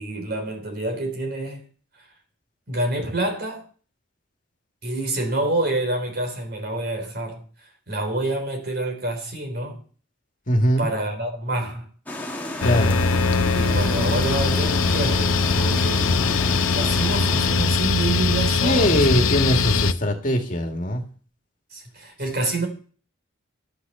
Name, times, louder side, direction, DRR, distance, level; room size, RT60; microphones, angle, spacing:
voice 1, 0.0-1.6 2.7-3.7 4.8-9.8 10.8-11.9 13.5-19.5 21.7-22.7, right 2 dB, 50° right, 3.7 m, -27 dB
voice 2, 10.5-10.8 12.6-13.0 18.6-21.0, equal, 40° left, 2.0 m, -21 dB
sound 1, 12.1-17.8, left 1 dB, 10° left, 1.5 m, -32 dB
sound 2, 12.6-19.9, left 4 dB, 85° left, 0.7 m, -21 dB
12.0 x 8.3 x 6.7 m
head